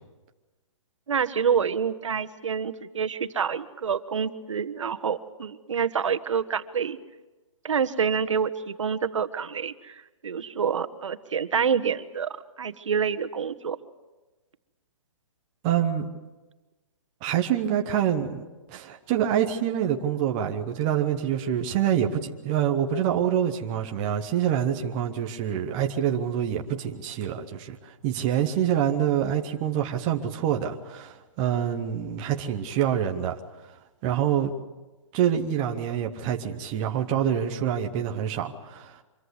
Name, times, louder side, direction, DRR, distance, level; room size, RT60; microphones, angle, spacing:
voice 1, 1.1-7.0 7.6-9.9 10.2-12.3 12.6-13.8, right 7 dB, 70° right, 10 dB, 1.4 m, -27 dB
voice 2, 15.6-16.1 17.2-33.4 34.0-34.5 35.1-39.0, right 9 dB, 15° right, 3 dB, 0.8 m, -26 dB
25.5 x 22.5 x 8.2 m, 1.2 s
hypercardioid pair, 180°, 16 cm